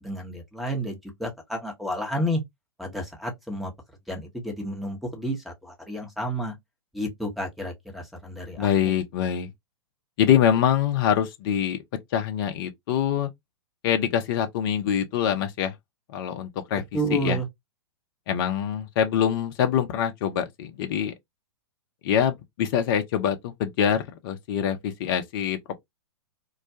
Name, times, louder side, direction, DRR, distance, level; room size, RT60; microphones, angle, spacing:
voice 1, 0.0-2.4 2.8-3.7 4.1-6.5 6.9-8.7 16.9-17.5, equal, ahead, 0.8 m, -30 dB
voice 2, 8.6-9.5 10.2-11.8 12.1-13.3 13.8-15.7 16.1-16.8 17.1-17.4 18.3-21.1 22.0-25.8, left 9 dB, 50° left, 0.6 m, -24 dB
2.3 x 2.2 x 2.7 m
hypercardioid pair, 115°, 15 cm